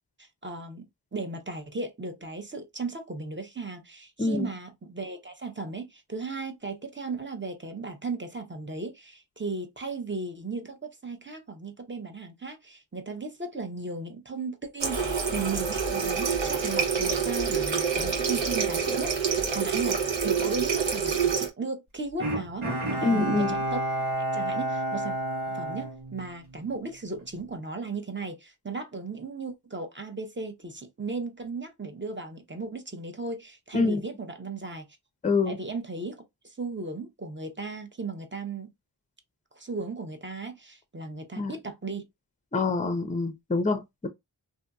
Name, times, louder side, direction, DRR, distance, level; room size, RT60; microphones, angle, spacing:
voice 1, 0.2-0.9 1.1-23.8 24.3-25.2 25.5-34.9 35.4-38.7 39.5-42.0, right 3 dB, 25° right, 0.8 m, -36 dB
voice 2, 4.2-4.5 23.0-23.5 33.7-34.0 35.2-35.6 41.4-41.5 42.5-44.1, left 3 dB, 15° left, 0.6 m, -26 dB
Water tap faucet, 14.8-21.5, right 6 dB, 65° right, 0.9 m, -27 dB
Bowed string instrument, 22.2-26.7 27.1-27.2, right 1 dB, 85° right, 1.3 m, -30 dB
2.7 x 2.6 x 2.3 m
cardioid pair, 45°, 48 cm